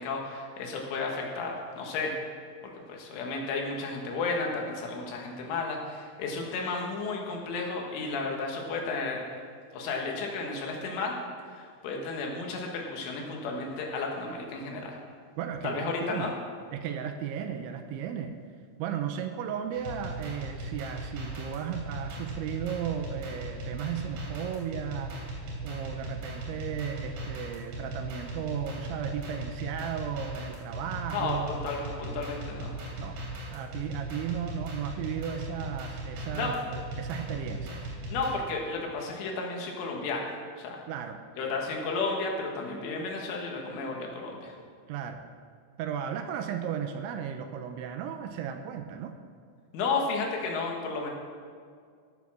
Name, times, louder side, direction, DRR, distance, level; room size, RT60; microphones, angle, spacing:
voice 1, 0.0-2.1 2.6-9.2 9.7-11.1 11.5-14.9 15.6-16.3 31.1-32.8 36.3-36.5 38.1-40.8 41.4-44.6 49.7-51.1, left 3 dB, 80° left, 0 dB, 4.2 m, -33 dB
voice 2, 15.4-16.3 16.7-18.3 18.8-25.1 25.6-31.6 33.0-33.2 33.5-37.9 40.9-41.2 44.9-45.2 45.8-49.1, right 8 dB, 80° right, 6 dB, 2.9 m, -35 dB
sound 1, 19.7-38.3, right 1 dB, 60° right, 5.1 m, -38 dB
16.5 x 8.3 x 6.2 m, 2.1 s
omnidirectional pair, 5.7 m